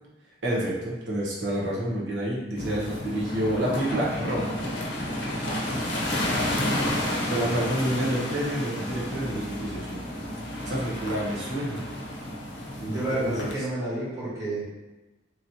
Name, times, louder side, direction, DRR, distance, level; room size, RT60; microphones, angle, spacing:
voice 1, 0.4-4.5 5.4-6.2 7.3-10.0 10.6-11.8 12.8-13.5, right 1 dB, 80° right, -4 dB, 0.9 m, -29 dB
sound 1, 2.5-13.5, left 1 dB, 75° left, 0.7 m, -31 dB
voice 2, 12.8-14.6, right 1 dB, 15° right, -9 dB, 1.1 m, -30 dB
3.0 x 2.7 x 2.8 m, 1.1 s
head